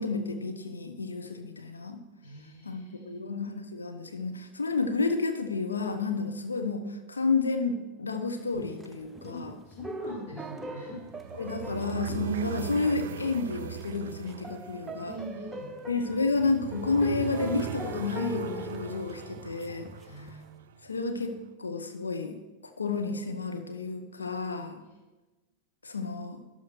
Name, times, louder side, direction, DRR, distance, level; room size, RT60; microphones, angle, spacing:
voice 1, 0.0-2.0 2.6-9.5 11.4-15.1 15.9-19.9 20.2-20.3 20.8-22.3 22.8-24.8 25.8-26.4, left 3 dB, 75° left, 6 dB, 0.9 m, -31 dB
voice 2, 2.2-3.2 9.3-11.0 15.0-15.7 20.0-20.4 24.8-25.0, equal, 55° left, -2 dB, 3.4 m, -43 dB
sound 1, 8.5-12.9 13.2-13.3 13.7-20.3, right 1 dB, 10° right, 0.6 m, -42 dB
sound 2, 10.9-21.0, right 9 dB, 60° right, 0.5 m, -40 dB
12.0 x 5.0 x 6.3 m, 1.2 s
figure-of-eight pair, 90°, 0 cm